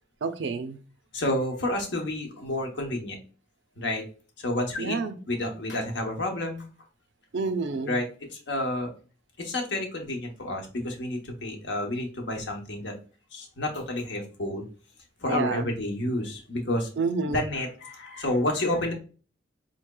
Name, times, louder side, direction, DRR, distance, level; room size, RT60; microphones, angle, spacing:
voice 1, 0.2-0.8 4.8-5.2 7.3-8.0 15.3-15.7 17.0-17.4, right 4 dB, 70° right, 10 dB, 0.4 m, -29 dB
voice 2, 1.1-3.2 3.8-4.0 4.4-5.0 5.3-6.6 7.9-8.9 9.4-12.9 13.3-14.6 15.2-16.9 17.3-18.9, left 1 dB, 65° left, 3 dB, 0.9 m, -30 dB
4.0 x 3.1 x 2.2 m, 0.38 s
head